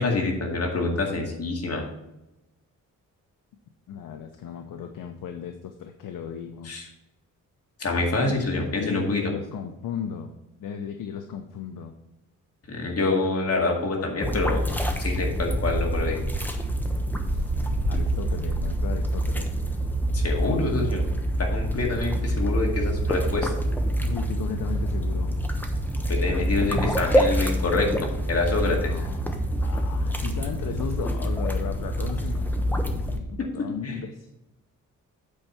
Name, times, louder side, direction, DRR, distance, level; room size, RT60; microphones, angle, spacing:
voice 1, 0.0-1.8 6.6-6.9 7.8-9.2 12.7-14.6 15.0-16.2 20.1-21.0 21.4-23.5 26.1-27.9 28.3-28.9 33.4-34.0, left 3 dB, 50° left, 1 dB, 2.1 m, -26 dB
voice 2, 3.9-6.7 8.1-10.3 10.6-11.9 17.3-17.6 17.9-19.5 24.0-25.4 28.6-34.3, left 7 dB, 85° left, 5 dB, 0.8 m, -36 dB
sound 1, 14.2-33.2, equal, 5° left, 1.0 m, -26 dB
8.5 x 4.7 x 5.6 m, 0.92 s
cardioid pair, 105°, 32 cm